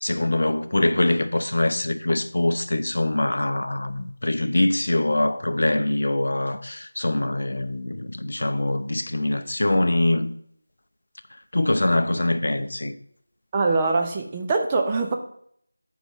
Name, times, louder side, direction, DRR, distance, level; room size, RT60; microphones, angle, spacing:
voice 1, 0.0-10.3 11.5-12.9, left 1 dB, 60° left, 0.6 m, -23 dB
voice 2, 13.5-15.1, right 3 dB, 15° right, 0.6 m, -23 dB
7.0 x 4.7 x 5.6 m
figure-of-eight pair, 170°, 0 cm